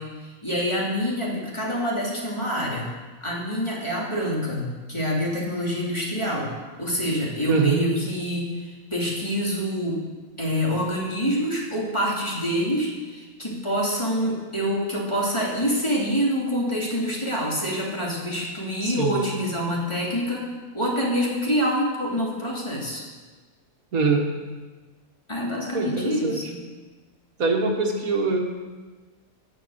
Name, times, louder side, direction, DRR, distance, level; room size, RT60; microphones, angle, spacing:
voice 1, 0.0-2.9 3.2-6.5 6.8-10.0 10.4-20.5 20.7-23.0 25.3-26.6, equal, 20° left, -4 dB, 2.9 m, -26 dB
voice 2, 7.5-7.8 18.8-19.2 23.9-24.3 25.7-26.4 27.4-28.4, right 4 dB, 80° right, 2 dB, 1.9 m, -23 dB
17.5 x 6.6 x 6.6 m, 1.3 s
omnidirectional pair, 1.5 m